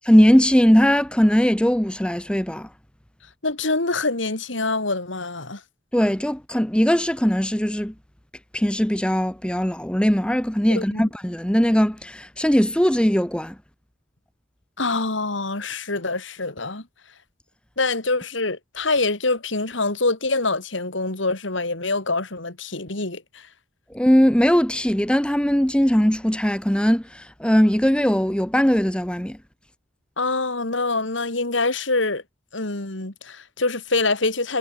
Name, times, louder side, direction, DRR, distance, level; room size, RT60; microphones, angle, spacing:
voice 1, 0.1-2.7 5.9-7.9 8.5-13.5 23.9-29.4, equal, 5° left, 1.0 m, -19 dB
voice 2, 3.4-5.6 10.7-11.0 14.8-16.9 17.8-23.5 30.2-32.2 32.5-34.6, left 3 dB, 75° left, 3.1 m, -25 dB
head